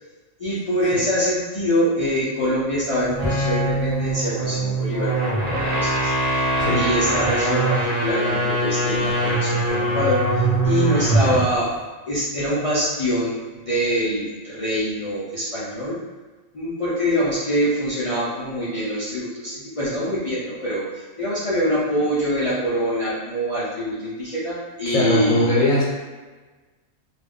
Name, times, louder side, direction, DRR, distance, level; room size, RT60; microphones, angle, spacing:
voice 1, 0.4-5.1 5.5-6.5 6.7-11.8 12.1-16.0 16.5-25.6, equal, 55° left, -10 dB, 0.3 m, -24 dB
sound 1, 3.1-11.5, right 1 dB, 25° right, 0.4 m, -22 dB
voice 2, 24.9-25.8, left 1 dB, 75° left, -6 dB, 1.0 m, -19 dB
2.4 x 2.2 x 3.5 m, 1.3 s
omnidirectional pair, 1.4 m